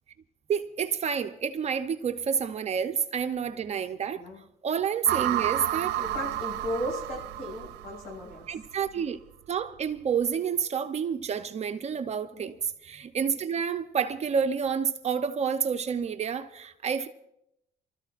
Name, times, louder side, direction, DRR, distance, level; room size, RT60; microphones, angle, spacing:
voice 1, 0.5-4.2 4.6-6.0 8.5-9.2 9.5-12.5 12.8-17.1, right 7 dB, 40° right, 0.7 m, -29 dB
sound 1, 5.0-8.3, right 13 dB, 80° right, 0.6 m, -31 dB
voice 2, 6.0-8.5 12.3-12.6, left 1 dB, 60° left, 6.3 m, -36 dB
28.0 x 13.5 x 2.5 m
cardioid pair, 110°, 17 cm